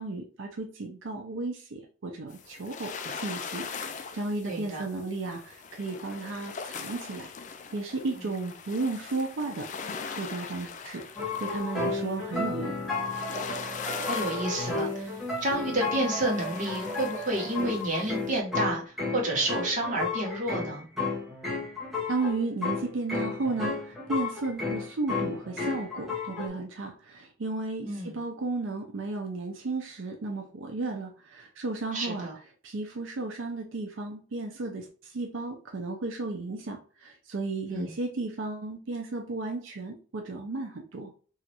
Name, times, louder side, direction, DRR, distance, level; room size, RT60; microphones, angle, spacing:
voice 1, 0.0-3.7 3.9-7.3 7.7-9.7 10.1-11.1 11.4-12.7 22.1-32.3 32.6-41.1, right 3 dB, 85° right, 3 dB, 0.5 m, -34 dB
sound 1, 2.3-18.4, left 5 dB, 40° left, 0.3 m, -41 dB
voice 2, 4.5-4.8 14.0-15.1 15.4-18.8 19.1-20.8 27.8-28.1 31.9-32.3 37.7-37.9, right 1 dB, 40° right, -2 dB, 1.0 m, -30 dB
sound 2, 11.2-26.5, left 3 dB, ahead, 0.9 m, -33 dB
3.1 x 2.4 x 2.8 m, 0.39 s
head